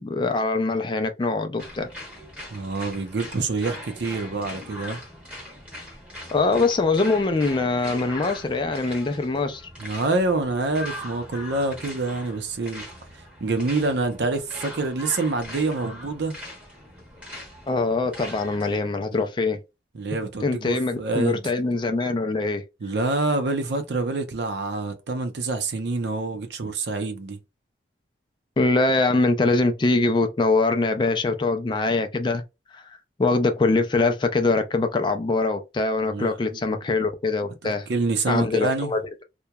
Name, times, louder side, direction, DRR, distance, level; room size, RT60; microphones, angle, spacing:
voice 1, 0.0-1.9 6.3-9.7 17.7-19.6 20.4-22.6 28.6-32.4 32.7-37.9 38.3-39.2, left 3 dB, 25° left, 0.3 m, -23 dB
sound 1, 1.6-18.8, left 1 dB, 10° right, 0.9 m, -40 dB
voice 2, 2.5-5.0 9.8-12.8 13.4-16.4 19.9-21.4 22.8-27.4 36.1-36.8 37.6-38.9, right 3 dB, 70° right, 0.5 m, -26 dB
2.8 x 2.2 x 2.2 m
head